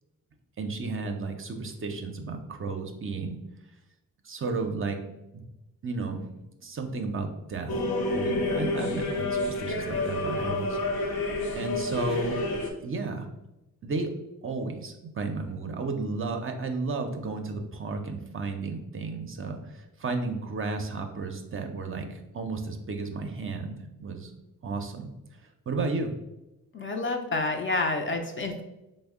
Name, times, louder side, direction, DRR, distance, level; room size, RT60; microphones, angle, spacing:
voice 1, 0.6-3.4 4.2-5.0 5.3-5.4 5.8-6.2 6.6-7.7 8.1-10.8 11.5-12.4 12.8-13.3 13.8-14.1 14.4-24.3 24.6-25.1 25.7-26.1, right 3 dB, 35° right, 5 dB, 0.5 m, -33 dB
sound 1, 7.7-12.7, left 2 dB, 85° left, 0.7 m, -29 dB
voice 2, 26.7-28.6, left 2 dB, 35° left, 4 dB, 0.4 m, -29 dB
3.4 x 2.1 x 3.5 m, 0.94 s
cardioid pair, 75°, 36 cm